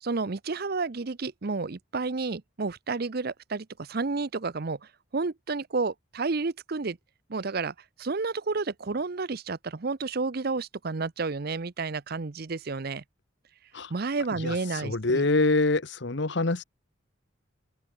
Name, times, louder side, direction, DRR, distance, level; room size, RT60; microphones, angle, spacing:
voice 1, 0.0-4.8 5.1-7.0 7.3-13.0 13.9-15.2, right 4 dB, 50° right, 0.7 m, -31 dB
voice 2, 14.3-16.6, left 2 dB, 60° left, 1.1 m, -26 dB
open air
head